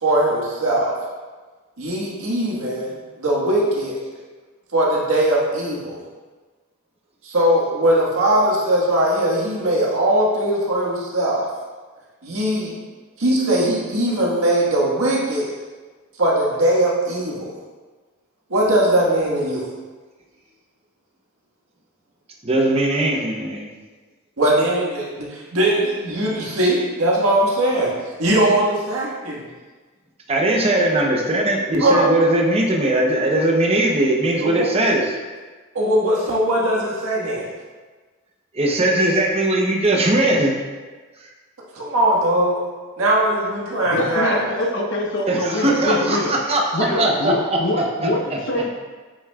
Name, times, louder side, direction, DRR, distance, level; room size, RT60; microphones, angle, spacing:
voice 1, 0.0-0.9 1.8-4.0 4.7-6.0 7.2-11.4 12.2-12.8 13.2-15.5 16.2-17.5 18.5-19.7 24.4-27.9 28.2-29.4 31.8-32.1 34.4-34.7 35.7-37.5 41.7-42.6 43.0-44.5, right 1 dB, 80° right, -4 dB, 1.7 m, -20 dB
voice 2, 22.4-23.7 30.3-35.2 38.5-40.5 45.3-48.4, right 1 dB, 30° right, 0 dB, 0.8 m, -20 dB
voice 3, 43.9-46.3 46.7-48.7, left 1 dB, 55° left, 0 dB, 1.0 m, -24 dB
8.4 x 6.1 x 2.4 m, 1.4 s
head